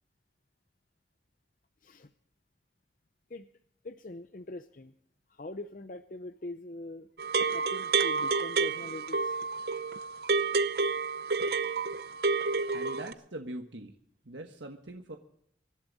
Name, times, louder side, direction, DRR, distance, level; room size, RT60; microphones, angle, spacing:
voice 1, 3.8-4.9 5.3-7.1 7.5-9.4, left 2 dB, 45° left, 10 dB, 0.6 m, -43 dB
sound 1, 7.2-13.1, right 4 dB, 60° right, 0.7 m, -29 dB
voice 2, 12.7-13.9 14.2-15.2, right 1 dB, 85° right, 4 dB, 1.4 m, -42 dB
25.0 x 11.5 x 4.0 m, 0.70 s
head